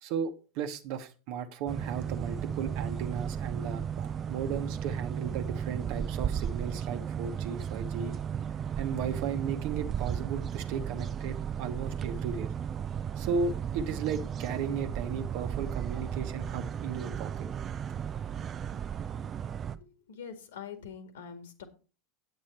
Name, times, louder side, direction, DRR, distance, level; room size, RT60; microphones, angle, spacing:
voice 1, 0.0-8.2 8.8-12.5 13.2-17.5, right 6 dB, 50° right, 1.2 m, -35 dB
sound 1, 1.7-19.7, right 8 dB, 30° right, 0.6 m, -35 dB
voice 2, 19.6-21.6, left 7 dB, 65° left, 1.9 m, -45 dB
8.9 x 8.7 x 4.3 m
figure-of-eight pair, 80°, 0 cm